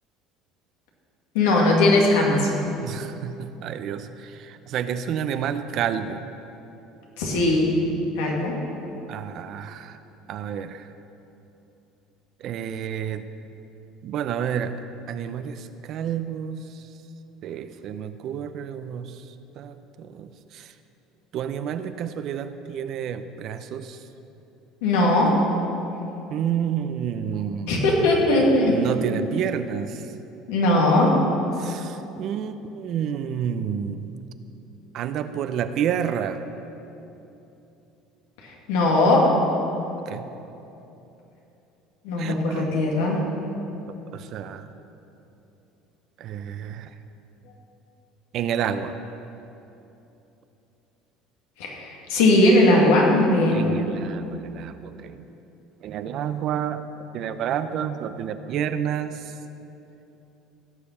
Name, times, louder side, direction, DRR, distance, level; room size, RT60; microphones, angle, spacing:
voice 1, 1.3-2.5 7.2-7.7 8.2-8.5 24.8-25.3 27.7-28.8 30.5-31.1 38.4-39.3 42.0-43.2 51.6-53.6, left 2 dB, 90° left, -2 dB, 2.5 m, -19 dB
voice 2, 2.8-6.2 9.1-10.0 10.3-10.9 12.4-13.3 14.0-14.8 15.1-16.9 17.4-19.2 19.6-20.7 21.3-24.0 26.3-27.7 28.7-30.1 31.6-34.1 34.9-36.4 40.1-40.3 42.2-42.7 43.9-44.7 46.2-46.9 48.3-48.9 53.5-55.2 55.8-56.9 57.1-59.3, right 8 dB, 55° right, 10 dB, 0.7 m, -30 dB
17.0 x 7.0 x 5.6 m, 2.9 s
supercardioid pair, 115°, 0 cm